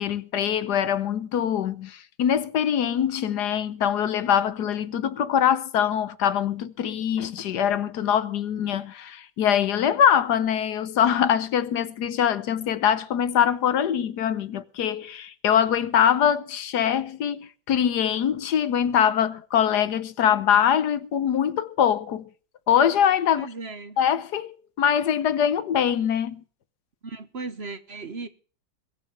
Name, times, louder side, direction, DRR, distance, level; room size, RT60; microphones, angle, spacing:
voice 1, 0.0-22.3 22.7-23.5 24.0-26.4, left 9 dB, 60° left, 1.3 m, -23 dB
voice 2, 23.3-24.0 27.0-28.3, right 3 dB, 40° right, 1.1 m, -36 dB
22.0 x 7.7 x 6.9 m
omnidirectional pair, 2.2 m